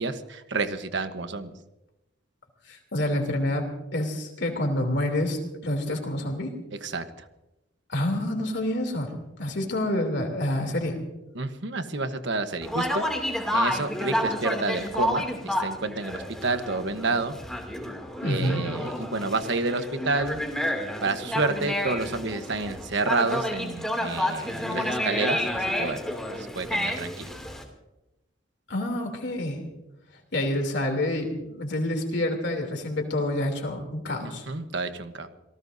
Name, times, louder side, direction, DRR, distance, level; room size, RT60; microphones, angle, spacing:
voice 1, 0.0-1.5 6.8-7.3 11.3-13.0 13.5-17.3 18.2-20.4 21.0-25.4 25.8-26.0 26.4-27.3 34.2-35.3, right 3 dB, 65° right, 9 dB, 1.2 m, -29 dB
voice 2, 2.7-3.6 3.9-6.5 7.9-11.0 18.2-18.6 28.7-29.6 30.3-34.4, left 1 dB, 65° left, 3 dB, 3.1 m, -28 dB
Conversation, 12.6-27.6, left 1 dB, 5° left, 2.7 m, -30 dB
27.0 x 18.0 x 2.7 m, 0.96 s
head